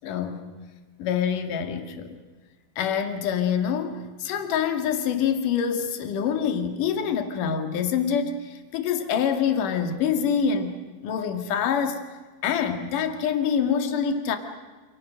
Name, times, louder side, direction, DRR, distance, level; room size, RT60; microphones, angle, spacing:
voice 1, 0.0-0.5 1.0-2.2 2.8-12.0 12.4-14.4, left 7 dB, 65° left, 6 dB, 3.5 m, -26 dB
29.0 x 28.0 x 6.5 m, 1.3 s
omnidirectional pair, 4.3 m